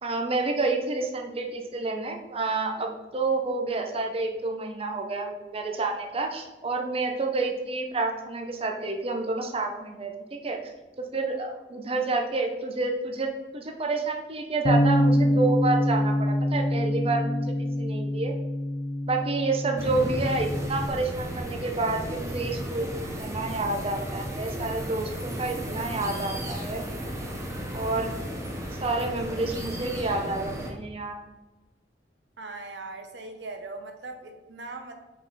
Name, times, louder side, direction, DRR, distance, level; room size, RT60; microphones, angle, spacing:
voice 1, 0.0-10.6 11.1-17.5 17.8-18.3 19.1-26.9 27.7-28.1 28.8-31.2, right 3 dB, 35° right, 3 dB, 0.7 m, -29 dB
Bass guitar, 14.7-20.9, equal, 30° left, 0.4 m, -25 dB
sound 1, 19.8-30.7, equal, 20° right, 1.0 m, -34 dB
voice 2, 32.4-34.9, right 3 dB, 90° right, 5 dB, 1.0 m, -39 dB
5.7 x 5.2 x 4.2 m, 1.1 s
head